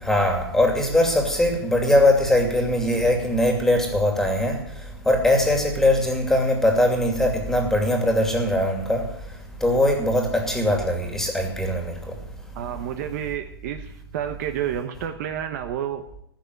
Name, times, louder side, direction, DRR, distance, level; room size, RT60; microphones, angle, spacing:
voice 1, 0.0-4.6 5.1-9.0 9.6-11.9, left 1 dB, 5° left, 2.6 m, -21 dB
voice 2, 12.5-16.2, right 10 dB, 40° right, 1.2 m, -30 dB
15.5 x 6.8 x 9.9 m
hypercardioid pair, 145°, 13 cm